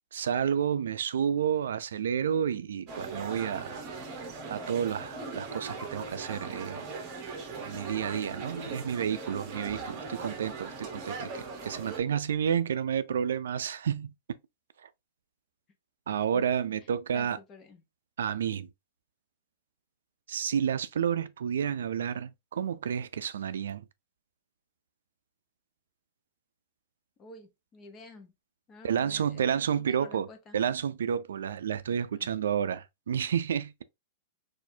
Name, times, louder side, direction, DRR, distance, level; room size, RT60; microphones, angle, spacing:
voice 1, 0.1-3.8 4.5-6.9 7.6-14.1 14.8-14.9 16.1-17.4 18.2-18.7 20.3-23.8 28.8-30.3 30.5-33.8, right 8 dB, 90° right, 0.3 m, -30 dB
sound 1, 2.9-12.0, right 3 dB, 35° right, 1.1 m, -40 dB
voice 2, 17.1-17.8 27.2-28.3 28.7-30.6 32.1-32.3, left 3 dB, 25° left, 0.8 m, -50 dB
4.2 x 2.5 x 2.6 m
hypercardioid pair, 140°, 0 cm